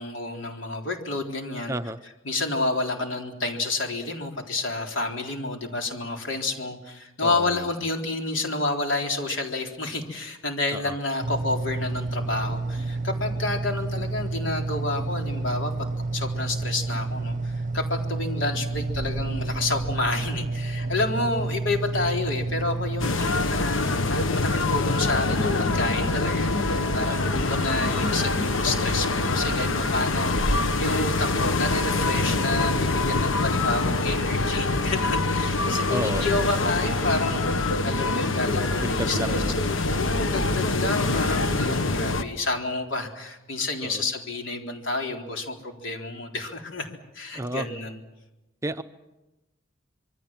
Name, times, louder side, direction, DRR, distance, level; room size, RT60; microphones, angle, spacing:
voice 1, 0.0-1.7 2.3-15.9 16.1-39.4 39.9-46.9 47.1-48.0, left 2 dB, 70° left, 2 dB, 4.0 m, -29 dB
voice 2, 1.7-2.0 7.2-7.7 10.7-10.9 27.1-27.2 35.9-36.3 38.8-39.5 40.3-40.6 43.8-44.0 47.3-47.7 48.6-48.8, right 1 dB, 15° right, 9 dB, 0.8 m, -31 dB
sound 1, 11.2-23.1, right 3 dB, 40° right, 1.0 m, -30 dB
Wind, 18.7-24.2, equal, 10° left, 3.8 m, -45 dB
sound 2, 23.0-42.2, left 2 dB, 90° left, 1.3 m, -25 dB
26.5 x 23.0 x 7.5 m, 1.0 s
head